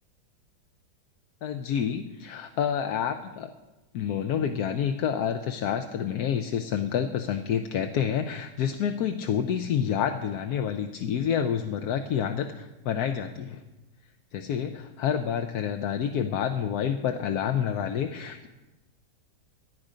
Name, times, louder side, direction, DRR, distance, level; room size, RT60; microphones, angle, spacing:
voice 1, 1.4-3.5 3.9-13.6 14.3-18.5, left 8 dB, 65° left, 6 dB, 1.1 m, -28 dB
16.5 x 10.5 x 5.1 m, 1.1 s
omnidirectional pair, 1.9 m